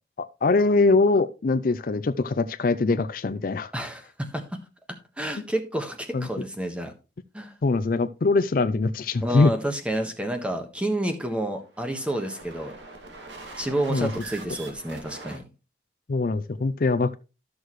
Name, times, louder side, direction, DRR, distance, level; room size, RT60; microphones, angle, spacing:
voice 1, 0.4-3.7 6.1-6.3 7.6-9.5 13.9-14.1 16.1-17.1, left 3 dB, 50° left, 0.4 m, -22 dB
voice 2, 3.7-4.6 5.2-6.9 7.3-7.5 9.2-12.7 13.6-15.4, right 1 dB, 5° right, 1.3 m, -29 dB
sound 1, 11.6-15.4, right 3 dB, 90° right, 2.2 m, -42 dB
13.0 x 6.4 x 3.1 m
head